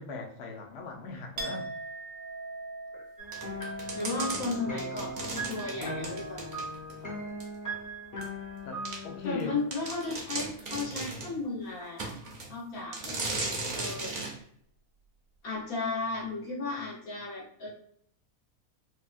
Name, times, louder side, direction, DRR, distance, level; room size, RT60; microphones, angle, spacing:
voice 1, 0.0-1.7 8.6-9.6, left 4 dB, 65° left, 2 dB, 0.7 m, -39 dB
Chink clink, 1.4-9.1 9.4-10.1, right 2 dB, 85° right, 1.1 m, -43 dB
sound 1, 3.2-9.4, equal, 20° left, 0.5 m, -39 dB
sound 2, 3.3-7.0 7.4-7.5 8.2-8.3 8.8-9.0 9.4-9.5 9.7-11.3 12.0-12.5 12.9-14.3, right 3 dB, 55° right, 0.5 m, -36 dB
voice 2, 3.9-6.5 9.2-14.1 15.4-17.7, left 3 dB, 80° left, -5 dB, 1.5 m, -35 dB
3.4 x 2.2 x 2.4 m, 0.66 s
omnidirectional pair, 1.5 m